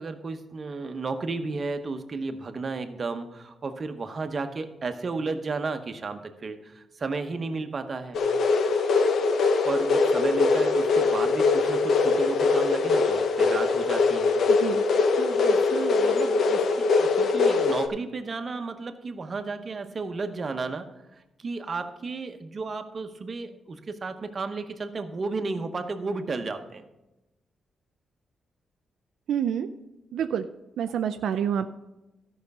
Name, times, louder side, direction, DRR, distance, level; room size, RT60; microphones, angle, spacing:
voice 1, 0.0-8.2 9.6-14.4 15.2-26.8, right 3 dB, 40° right, 7 dB, 0.9 m, -33 dB
sound 1, 8.1-17.9, left 4 dB, 70° left, 0.7 m, -22 dB
voice 2, 29.3-29.7 30.1-30.4 30.8-31.7, right 8 dB, 85° right, 8 dB, 0.4 m, -27 dB
13.0 x 5.8 x 5.4 m, 0.99 s
cardioid pair, 95°, 0 cm